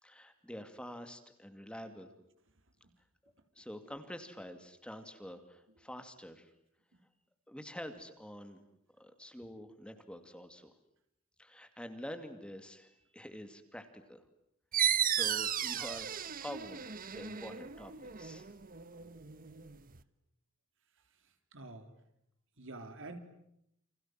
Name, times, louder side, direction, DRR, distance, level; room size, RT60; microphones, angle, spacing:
voice 1, 0.0-2.1 3.6-6.5 7.5-8.6 9.0-10.7 11.4-14.2 14.9-18.5, equal, 5° left, 8 dB, 2.5 m, -47 dB
sound 1, 14.7-20.0, right 9 dB, 40° right, 1.1 m, -35 dB
voice 2, 21.5-21.9 22.6-23.2, right 2 dB, 65° right, 7 dB, 3.7 m, -46 dB
30.0 x 26.0 x 7.7 m, 0.76 s
head